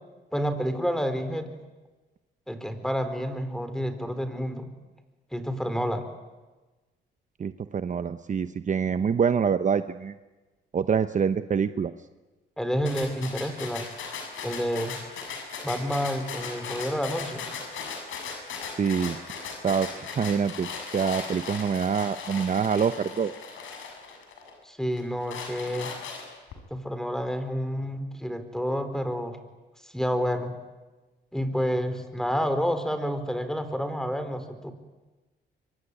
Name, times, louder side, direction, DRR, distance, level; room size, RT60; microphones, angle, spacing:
voice 1, 0.3-1.5 2.5-4.7 5.3-6.1 12.6-13.9 14.4-15.0 15.6-17.5 24.6-25.9 26.7-29.4 29.8-30.5 31.3-34.7, equal, 5° left, 10 dB, 4.2 m, -29 dB
voice 2, 7.4-10.2 10.7-11.9 18.7-19.2 19.6-20.7 20.9-23.3, right 6 dB, 40° right, 11 dB, 0.9 m, -25 dB
sound 1, 12.9-24.5 25.0-26.5, left 5 dB, 75° left, 7.1 m, -38 dB
24.5 x 24.5 x 10.0 m, 1.2 s
cardioid pair, 90°, 20 cm